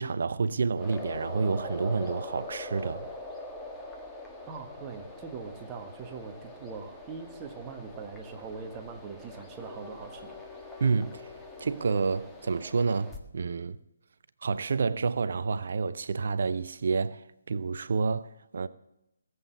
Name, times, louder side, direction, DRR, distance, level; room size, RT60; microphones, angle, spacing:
voice 1, 0.0-3.1 10.8-11.3 11.6-13.8 14.4-18.7, right 4 dB, 55° right, 0.7 m, -29 dB
sound 1, 0.7-13.2, left 2 dB, 5° left, 1.6 m, -43 dB
voice 2, 4.5-10.4, right 5 dB, 20° right, 1.6 m, -42 dB
18.5 x 8.0 x 7.1 m
figure-of-eight pair, 145°, 0 cm